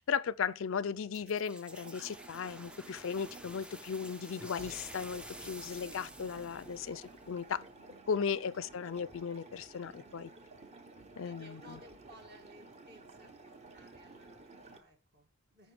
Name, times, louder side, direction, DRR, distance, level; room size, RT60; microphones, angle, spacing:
voice 1, 0.1-7.6 8.1-10.3 11.2-11.8, left 6 dB, 65° left, 0.4 m, -36 dB
sound 1, 1.1-7.7, right 1 dB, 5° right, 0.3 m, -50 dB
sound 2, 1.7-14.8, right 3 dB, 30° right, 0.9 m, -54 dB
voice 2, 8.6-9.0 11.2-15.7, equal, 50° right, 2.2 m, -59 dB
13.5 x 5.3 x 3.4 m
head